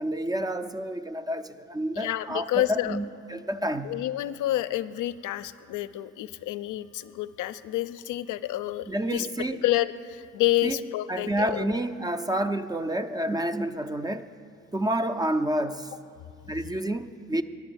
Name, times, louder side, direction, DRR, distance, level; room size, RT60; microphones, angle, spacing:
voice 1, 0.0-4.0 8.9-9.6 10.6-14.3 14.7-15.9 16.5-17.4, right 1 dB, 15° right, 10 dB, 0.3 m, -29 dB
voice 2, 2.0-3.0 3.8-9.3 9.6-11.7, left 15 dB, 80° left, 13 dB, 0.4 m, -29 dB
9.4 x 6.9 x 8.8 m, 2.4 s
cardioid pair, 90°, 30 cm